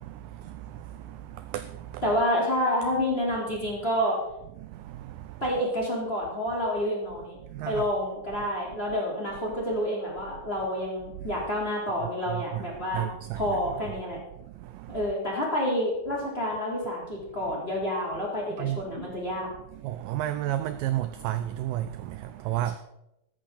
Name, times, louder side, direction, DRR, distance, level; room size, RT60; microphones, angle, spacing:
voice 1, 0.0-2.0 4.6-5.4 7.4-7.9 11.2-11.3 12.3-12.7 12.9-13.6 14.5-15.1 18.6-19.1 19.7-22.8, right 13 dB, 80° right, 2.0 m, -33 dB
voice 2, 2.0-4.2 5.4-7.4 7.6-13.1 13.3-14.2 14.9-19.5, equal, 15° left, 3.8 m, -28 dB
14.0 x 14.0 x 4.2 m
omnidirectional pair, 4.5 m